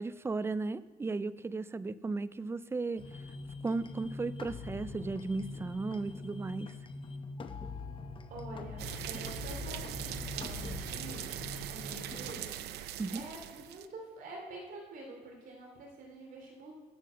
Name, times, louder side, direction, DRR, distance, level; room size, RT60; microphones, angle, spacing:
voice 1, 0.0-3.0 3.6-6.7 13.0-13.2, right 3 dB, 15° right, 16 dB, 0.4 m, -35 dB
sound 1, 3.0-12.3, left 3 dB, 30° left, 0.8 m, -43 dB
voice 2, 8.3-11.3 11.7-12.6 13.1-16.7, right 2 dB, 55° right, 0 dB, 3.1 m, -47 dB
sound 2, 8.8-13.9, right 12 dB, 75° right, 0.6 m, -41 dB
10.5 x 7.5 x 6.4 m, 1.4 s
cardioid pair, 110°, 17 cm